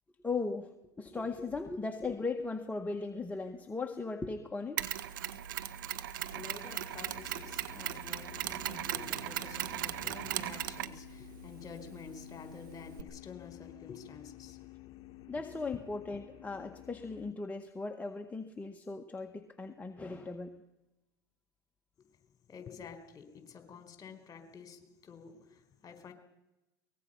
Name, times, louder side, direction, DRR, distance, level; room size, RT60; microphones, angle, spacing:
voice 1, 0.2-4.9 15.3-20.6, left 3 dB, 15° left, 4 dB, 1.8 m, -38 dB
Mechanisms, 4.8-13.0, right 12 dB, 75° right, 1.2 m, -38 dB
voice 2, 5.9-15.5 22.0-22.1 22.5-26.1, left 6 dB, 35° left, 8 dB, 4.3 m, -50 dB
sound 1, 6.9-17.3, left 14 dB, 50° left, 1.1 m, -52 dB
23.5 x 20.0 x 5.7 m, 0.96 s
hypercardioid pair, 85°, 11 cm